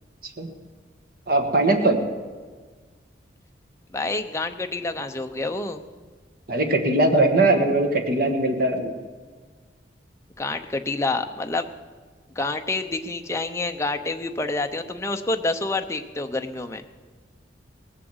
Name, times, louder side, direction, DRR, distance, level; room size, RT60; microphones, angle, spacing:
voice 1, 1.3-2.0 6.5-8.9, right 2 dB, 50° right, 4 dB, 1.6 m, -20 dB
voice 2, 3.9-5.8 10.4-11.7 12.4-16.8, left 2 dB, 15° left, 5 dB, 0.7 m, -28 dB
18.5 x 7.6 x 7.9 m, 1.5 s
head